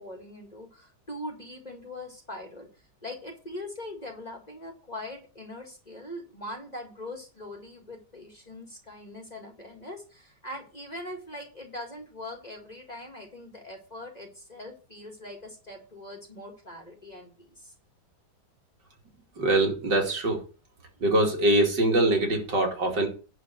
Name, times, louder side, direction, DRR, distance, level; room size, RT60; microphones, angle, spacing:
voice 1, 0.0-2.7 3.0-17.7, left 1 dB, 25° left, 3 dB, 2.0 m, -41 dB
voice 2, 19.4-20.4 21.0-23.1, right 1 dB, 75° right, 1 dB, 3.2 m, -23 dB
10.5 x 4.0 x 7.7 m, 0.34 s
omnidirectional pair, 1.9 m